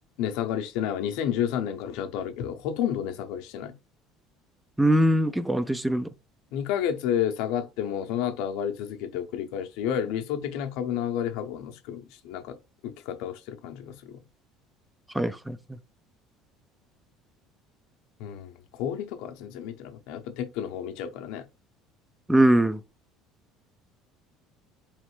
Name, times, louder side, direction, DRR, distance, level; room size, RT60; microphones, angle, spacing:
voice 1, 0.2-3.7 6.5-12.6 12.8-14.2 18.2-21.5, left 9 dB, 75° left, 0.6 m, -31 dB
voice 2, 4.8-6.1 15.1-15.6 22.3-22.8, right 1 dB, 5° right, 0.3 m, -21 dB
4.0 x 3.1 x 3.1 m
cardioid pair, 135°, 0 cm